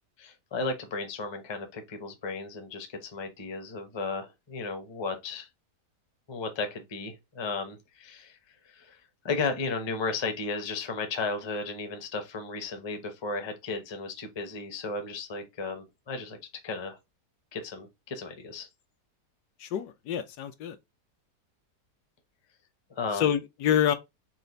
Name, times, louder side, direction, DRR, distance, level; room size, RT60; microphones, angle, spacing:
voice 1, 0.2-5.5 6.3-8.4 8.6-9.0 9.2-16.4 16.6-17.0 17.5-18.7 23.0-23.3, left 4 dB, 30° left, 0.5 m, -34 dB
voice 2, 19.6-20.8 23.1-23.9, left 9 dB, 75° left, 1.1 m, -27 dB
4.3 x 2.4 x 3.9 m
omnidirectional pair, 1.8 m